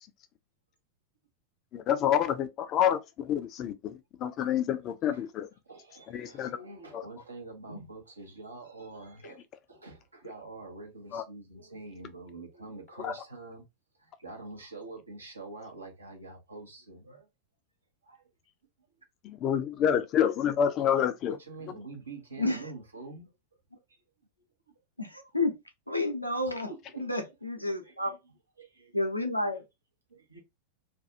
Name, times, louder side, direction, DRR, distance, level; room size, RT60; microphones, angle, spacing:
voice 1, 1.7-5.5 6.1-6.6 6.9-7.0 11.1-11.2 13.0-13.2 19.2-21.4, left 9 dB, 35° left, 0.4 m, -28 dB
voice 2, 5.7-13.6 14.0-17.3 18.0-18.2 21.3-23.3 26.6-27.1 27.8-28.2 28.6-28.9 29.4-29.6 30.1-30.4, right 3 dB, 75° right, 0.9 m, -46 dB
voice 3, 22.4-22.7 25.0-25.6 25.9-28.1 28.9-29.6 30.3-30.4, left 2 dB, 90° left, 0.6 m, -31 dB
2.5 x 2.3 x 2.7 m
figure-of-eight pair, 90°, 0 cm